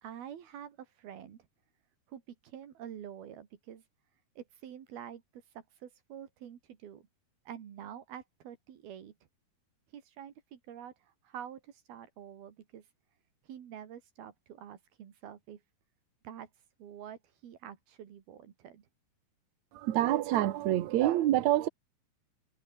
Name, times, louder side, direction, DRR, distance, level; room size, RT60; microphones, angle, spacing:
voice 1, 0.0-1.5 2.1-3.8 4.4-7.1 7.5-9.1 9.9-12.9 13.4-15.6 16.2-16.5 16.8-18.9, right 9 dB, 85° right, 4.3 m, -47 dB
voice 2, 19.7-21.7, right 14 dB, 60° right, 2.2 m, -27 dB
omnidirectional pair, 4.2 m